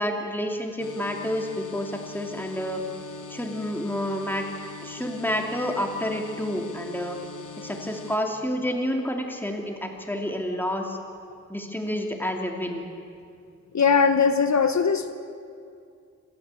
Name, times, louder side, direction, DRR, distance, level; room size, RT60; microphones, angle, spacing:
voice 1, 0.0-2.8 3.3-4.5 4.8-7.2 7.6-11.0 11.5-12.8, equal, 5° left, 2 dB, 2.7 m, -29 dB
sound 1, 0.8-8.2, left 5 dB, 90° left, 1.4 m, -42 dB
voice 2, 13.7-15.1, left 5 dB, 65° left, 9 dB, 0.9 m, -20 dB
28.0 x 13.0 x 8.3 m, 2.4 s
wide cardioid pair, 95°, 30 cm